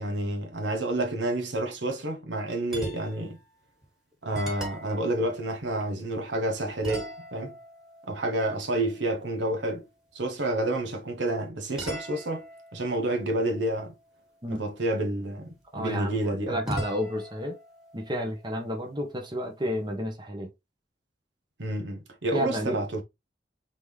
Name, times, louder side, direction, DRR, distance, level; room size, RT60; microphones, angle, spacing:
voice 1, 0.0-3.4 4.2-7.6 8.1-9.8 10.1-12.5 12.7-13.9 14.5-16.6 21.6-23.0, right 1 dB, 75° right, 1.1 m, -29 dB
sound 1, 2.7-3.4 3.8-3.9 4.3-6.3 6.8-9.5 11.8-14.4 16.7-19.3, equal, 5° right, 1.7 m, -41 dB
voice 2, 15.7-17.6 17.9-20.5 22.3-22.8, equal, 25° right, 1.1 m, -31 dB
4.0 x 3.6 x 3.3 m
head